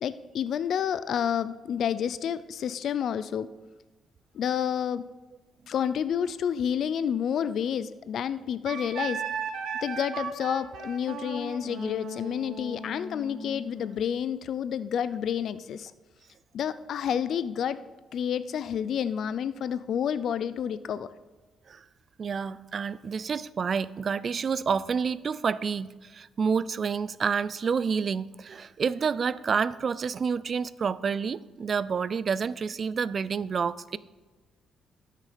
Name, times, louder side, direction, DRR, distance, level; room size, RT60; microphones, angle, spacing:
voice 1, 0.0-3.5 4.3-5.0 5.7-9.2 9.8-15.9 16.5-17.8 18.1-21.1, left 8 dB, 65° left, 15 dB, 0.4 m, -29 dB
Wind instrument woodwind instrument, 8.7-14.0, right 4 dB, 70° right, 1.5 m, -36 dB
voice 2, 22.2-34.0, right 6 dB, 45° right, 17 dB, 0.4 m, -29 dB
12.5 x 6.5 x 5.0 m, 1.2 s
cardioid pair, 90°, 0 cm